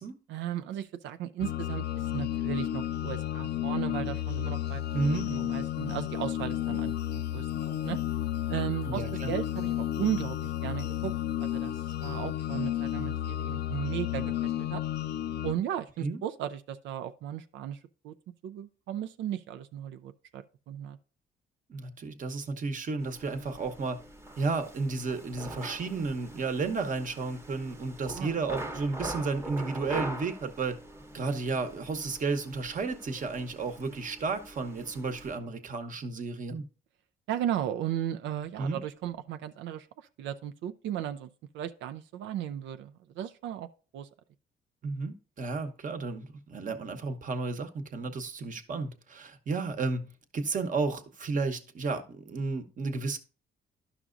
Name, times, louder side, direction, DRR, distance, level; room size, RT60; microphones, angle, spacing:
voice 1, 0.3-8.0 8.5-11.1 11.4-14.8 15.4-17.8 18.0-18.1 18.4-21.0 28.1-28.3 37.3-41.3 41.5-44.1, right 10 dB, 90° right, 0.4 m, -36 dB
sound 1, 1.4-15.5, left 12 dB, 65° left, 0.4 m, -32 dB
voice 2, 4.9-5.3 8.8-9.3 16.0-16.2 21.7-24.0 24.4-30.8 31.1-36.6 38.6-38.8 44.8-53.2, right 4 dB, 45° right, 1.0 m, -32 dB
sound 2, 23.0-35.4, right 1 dB, 15° right, 0.9 m, -43 dB
11.0 x 5.9 x 2.5 m
cardioid pair, 110°, 19 cm